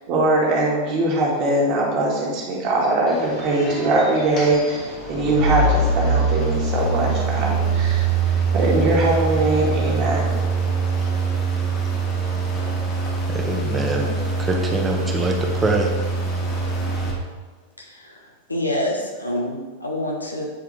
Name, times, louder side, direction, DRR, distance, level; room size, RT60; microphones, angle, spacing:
voice 1, 0.1-10.4, right 2 dB, 40° right, -4 dB, 1.8 m, -21 dB
sound 1, 3.1-17.1, right 3 dB, 30° left, 1.5 m, -23 dB
voice 2, 13.3-15.9, right 2 dB, 15° right, 1 dB, 1.0 m, -24 dB
voice 3, 17.8-18.1 18.5-20.4, left 1 dB, 85° left, -1 dB, 1.1 m, -26 dB
8.2 x 4.6 x 3.2 m, 1.4 s
figure-of-eight pair, 90°, 0 cm